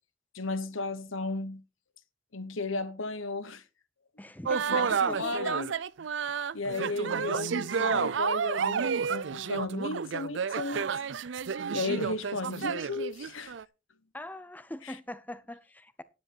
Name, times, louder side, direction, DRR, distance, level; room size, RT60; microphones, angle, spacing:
voice 1, 0.3-1.6 2.3-3.6 4.7-5.8 6.5-10.9 11.7-13.5, left 3 dB, 90° left, 1.2 m, -34 dB
voice 2, 4.2-5.4 14.1-16.0, left 1 dB, 10° left, 0.7 m, -42 dB
sound 1, 4.4-13.6, right 6 dB, 65° right, 0.5 m, -30 dB
10.0 x 9.8 x 4.3 m
head